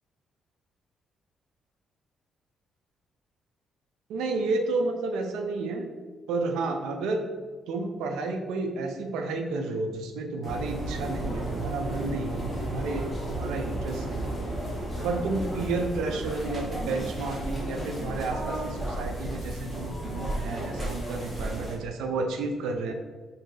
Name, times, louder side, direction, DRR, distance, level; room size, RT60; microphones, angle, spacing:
voice 1, 4.1-5.9 6.3-7.2 7.7-14.4 15.0-22.9, right 3 dB, 90° right, 5 dB, 0.4 m, -31 dB
sound 1, 10.4-21.8, right 1 dB, 5° right, 1.3 m, -33 dB
3.0 x 2.7 x 3.8 m, 1.5 s
cardioid pair, 90°, 0 cm